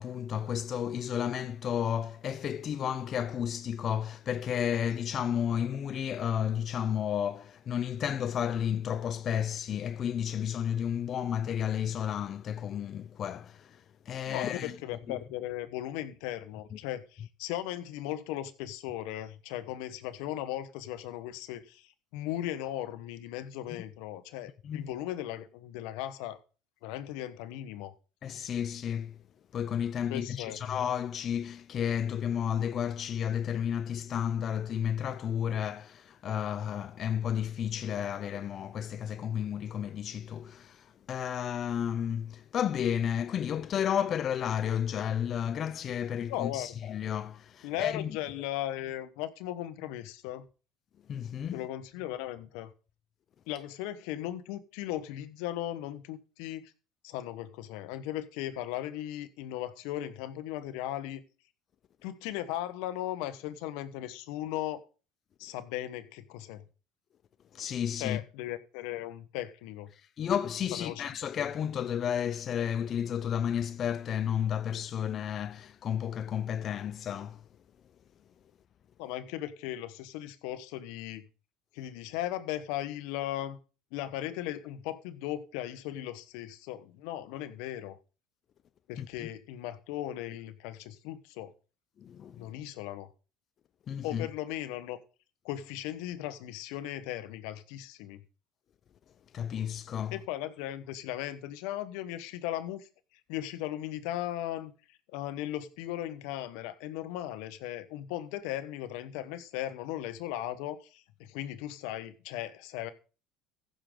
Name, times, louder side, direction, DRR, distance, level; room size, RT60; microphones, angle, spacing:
voice 1, 0.0-14.8 15.1-15.2 16.7-16.8 24.6-24.9 28.2-29.2 29.5-48.2 51.1-51.6 67.5-68.2 69.9-77.4 89.0-89.3 92.0-92.4 93.9-94.3 99.3-100.2, left 9 dB, 45° left, 0.5 m, -32 dB
voice 2, 14.3-26.4 26.8-27.9 30.1-30.6 46.3-46.7 47.6-50.5 51.5-52.7 53.5-56.7 57.0-61.2 62.0-64.8 65.4-66.6 68.0-69.9 70.8-71.0 79.0-81.3 81.7-83.6 83.9-88.0 88.9-91.5 92.4-93.1 94.0-95.0 95.4-98.2 100.1-102.9 103.3-112.9, left 13 dB, 75° left, 1.2 m, -37 dB
15.0 x 6.7 x 3.8 m
supercardioid pair, 100°, 0 cm